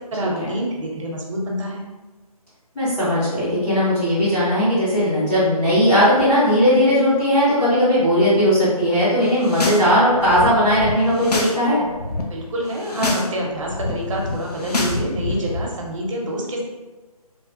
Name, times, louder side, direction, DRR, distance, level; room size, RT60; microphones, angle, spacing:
voice 1, 0.0-1.8 12.3-16.6, equal, 55° right, -1 dB, 0.7 m, -27 dB
voice 2, 2.7-11.8, equal, 5° left, -16 dB, 0.4 m, -18 dB
sound 1, 9.3-9.8 10.1-11.6 11.8-12.2 12.7-13.3 13.5-15.6, left 2 dB, 85° left, 0.6 m, -26 dB
3.2 x 2.2 x 2.5 m, 1.2 s
figure-of-eight pair, 155°, 20 cm